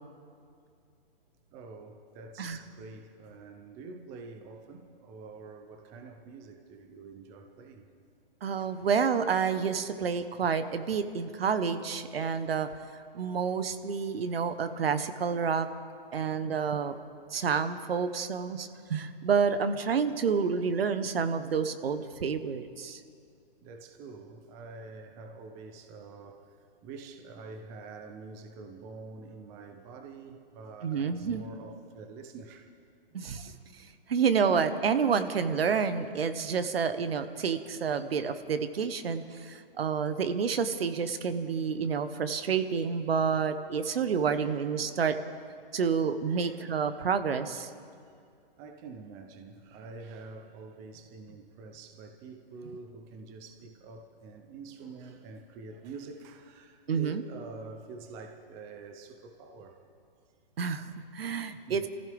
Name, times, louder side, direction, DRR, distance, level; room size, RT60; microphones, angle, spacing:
voice 1, 1.5-7.9 23.6-32.7 33.4-33.5 44.3-44.7 46.3-46.7 48.6-59.8 61.7-61.9, right 4 dB, 10° right, 6 dB, 0.4 m, -46 dB
voice 2, 8.4-12.7 13.1-15.7 16.1-16.9 17.3-23.0 30.8-31.4 33.1-45.2 45.7-47.7 56.9-57.2 60.6-61.9, right 6 dB, 80° right, 11 dB, 1.2 m, -29 dB
26.0 x 15.0 x 3.5 m, 2.3 s
hypercardioid pair, 155°, 30 cm